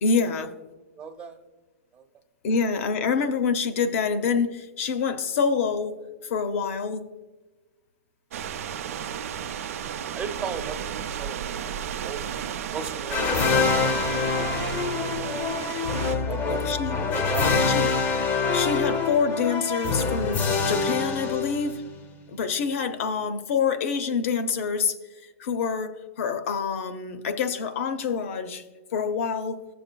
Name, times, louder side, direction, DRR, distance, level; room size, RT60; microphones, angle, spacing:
voice 1, 0.0-0.5 2.4-7.0 16.5-17.0 17.7-17.9 18.5-21.8 22.3-24.9 25.4-28.6 28.9-29.6, left 5 dB, 70° left, 9 dB, 0.7 m, -26 dB
voice 2, 1.0-1.3 1.9-2.0 8.8-9.3 10.1-10.8 11.1-11.4 12.0-12.3 12.7-14.0 15.0-15.4 16.3-16.9 17.1-17.8, right 6 dB, 30° right, 0 dB, 0.8 m, -36 dB
sound 1, 8.3-16.2, right 8 dB, 75° right, 0.5 m, -33 dB
sound 2, 13.1-22.0, left 4 dB, 30° left, 0.7 m, -25 dB
14.0 x 6.7 x 2.2 m, 1.2 s
hypercardioid pair, 130°, 8 cm